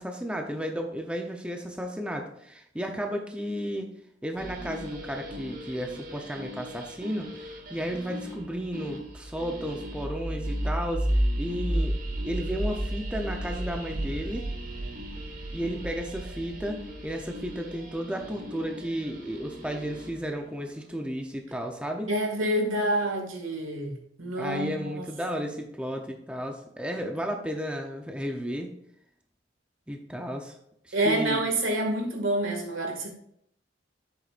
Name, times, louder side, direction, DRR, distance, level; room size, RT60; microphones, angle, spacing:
voice 1, 0.0-3.9 4.2-11.1 11.4-12.0 12.2-14.4 15.5-22.1 24.4-28.7 29.9-30.6 30.8-31.4, equal, 5° right, 2 dB, 0.7 m, -33 dB
sound 1, 4.4-20.3, right 1 dB, 45° right, 1.3 m, -34 dB
voice 2, 22.1-25.0 30.9-33.1, right 1 dB, 90° right, 2 dB, 2.1 m, -28 dB
9.8 x 8.0 x 2.5 m, 0.72 s
head